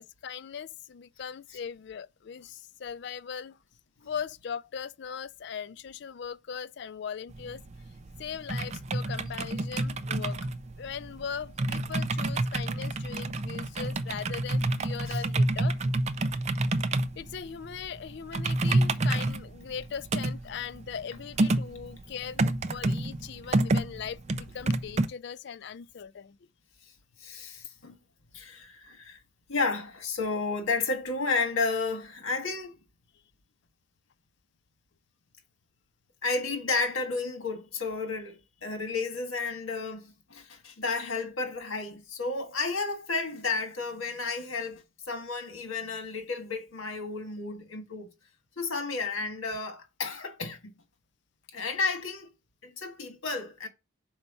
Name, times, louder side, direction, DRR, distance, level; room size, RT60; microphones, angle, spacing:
voice 1, 0.0-3.6 4.0-7.6 8.2-10.5 10.8-15.8 17.2-26.4, left 7 dB, 55° left, 0.3 m, -39 dB
sound 1, 7.3-25.1, right 2 dB, 30° right, 0.4 m, -29 dB
voice 2, 27.2-28.0 28.3-29.2 29.5-32.8 36.2-48.1 48.6-50.8 51.5-52.3 52.6-53.7, left 4 dB, 75° left, 1.6 m, -32 dB
5.5 x 4.4 x 5.4 m
head